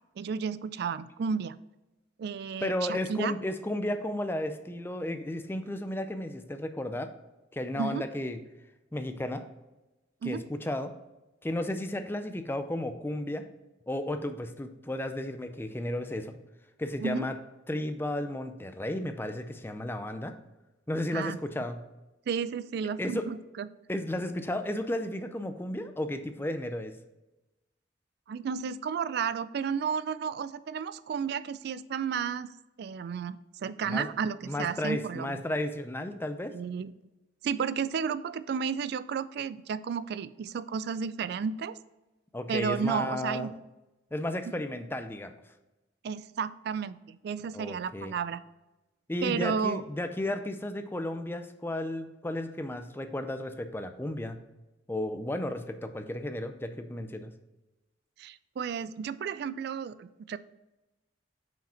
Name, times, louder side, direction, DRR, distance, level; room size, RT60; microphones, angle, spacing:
voice 1, 0.2-1.6 2.2-3.3 7.8-8.0 10.2-10.4 17.0-17.3 21.1-21.4 22.3-23.7 28.3-32.5 32.8-35.4 36.5-36.9 37.4-41.8 42.5-43.5 46.0-48.4 49.2-49.8 58.2-60.4, right 6 dB, 60° right, 15 dB, 0.3 m, -32 dB
voice 2, 2.6-7.1 7.5-8.4 8.9-9.4 10.2-10.9 11.4-13.5 13.9-16.4 16.8-17.4 17.7-20.3 20.9-21.8 23.0-23.3 23.9-26.9 33.8-34.1 34.4-36.5 42.3-43.5 44.1-45.3 47.5-48.1 49.1-54.4 54.9-57.3, left 1 dB, 10° left, 8 dB, 0.4 m, -33 dB
5.7 x 5.0 x 4.3 m, 1.0 s
head